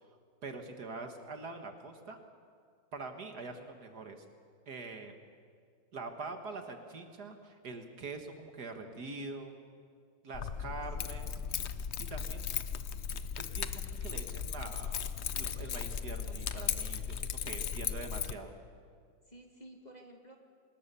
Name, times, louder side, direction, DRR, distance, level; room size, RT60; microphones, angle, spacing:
voice 1, 0.4-2.2 2.9-4.2 4.7-5.1 5.9-9.5 10.2-11.3 12.1-12.4 13.4-18.5, right 3 dB, 55° right, 6 dB, 2.0 m, -44 dB
Keys jangling, 10.3-18.3, left 7 dB, 60° left, 0.7 m, -37 dB
voice 2, 10.6-11.4 17.9-18.3 19.3-20.4, right 1 dB, 20° left, 2 dB, 2.1 m, -55 dB
25.5 x 20.0 x 6.9 m, 2.1 s
omnidirectional pair, 2.1 m